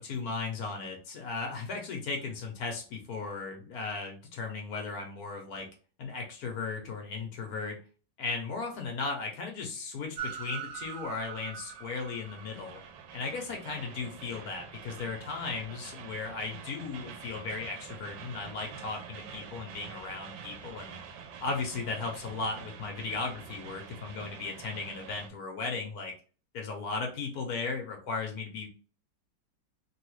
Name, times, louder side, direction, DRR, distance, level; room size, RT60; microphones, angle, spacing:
voice 1, 0.0-5.7 6.0-7.8 8.2-12.8 13.1-20.9 21.4-26.1 26.5-28.7, left 4 dB, 60° left, 2 dB, 1.1 m, -36 dB
Train, 10.2-25.3, right 7 dB, 80° right, 1.3 m, -45 dB
3.3 x 2.3 x 3.0 m, 0.37 s
omnidirectional pair, 2.1 m